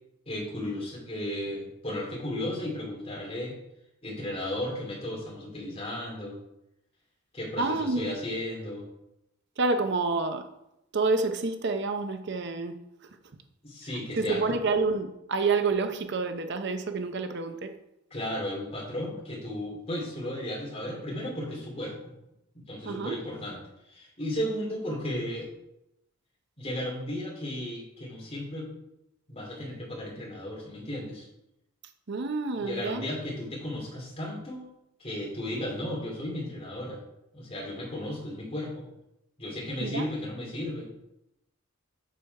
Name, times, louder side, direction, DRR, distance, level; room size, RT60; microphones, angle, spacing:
voice 1, 0.3-3.6 4.0-6.4 7.3-8.8 13.6-14.4 18.1-22.1 22.5-23.6 23.9-25.5 26.6-28.8 29.3-31.3 32.6-34.6 35.0-37.0 37.3-38.9 39.4-41.0, left 1 dB, 30° left, -3 dB, 2.9 m, -34 dB
voice 2, 7.6-8.1 9.6-10.5 10.9-12.8 14.2-17.7 22.8-23.2 32.1-33.1 39.8-40.1, right 3 dB, 55° right, 7 dB, 0.6 m, -28 dB
7.6 x 6.8 x 4.7 m, 0.87 s
head